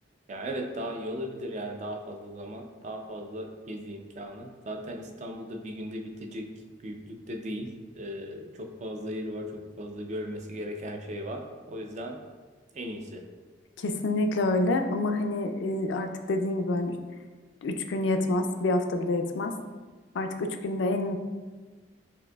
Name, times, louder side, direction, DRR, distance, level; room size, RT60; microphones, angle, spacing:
voice 1, 0.3-6.5 6.8-12.2 12.7-13.2, equal, 40° right, 3 dB, 0.4 m, -37 dB
voice 2, 13.8-17.0 17.6-19.6 20.1-21.2, left 2 dB, 85° left, 6 dB, 0.4 m, -27 dB
6.1 x 2.6 x 2.3 m, 1.3 s
head